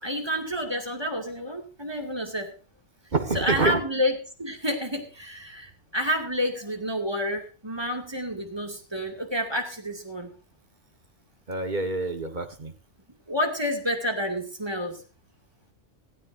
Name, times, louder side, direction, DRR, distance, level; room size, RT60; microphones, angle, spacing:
voice 1, 0.0-2.5 3.3-4.1 4.4-10.3 13.3-15.0, equal, 20° right, 3 dB, 2.4 m, -29 dB
voice 2, 3.1-3.8 11.5-12.7, right 3 dB, 40° right, 7 dB, 1.7 m, -27 dB
16.5 x 16.0 x 2.7 m, 0.35 s
omnidirectional pair, 1.3 m